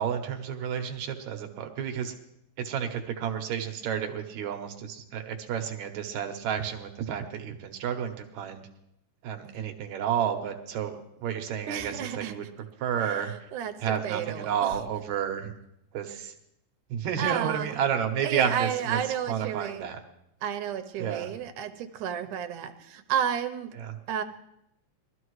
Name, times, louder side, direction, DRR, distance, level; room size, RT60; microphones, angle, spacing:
voice 1, 0.0-2.1 2.6-8.6 9.2-12.4 12.8-13.5 13.8-15.5 15.9-16.3 16.9-19.0 19.3-20.0 21.0-21.3 23.8-23.9, right 8 dB, 70° right, 5 dB, 2.3 m, -31 dB
voice 2, 11.7-12.3 13.0-13.7 14.0-14.8 16.1-16.2 17.2-17.8 18.2-19.9 20.4-23.7 24.1-24.2, right 9 dB, 90° right, 8 dB, 2.4 m, -32 dB
22.0 x 13.5 x 3.1 m, 0.80 s
omnidirectional pair, 3.5 m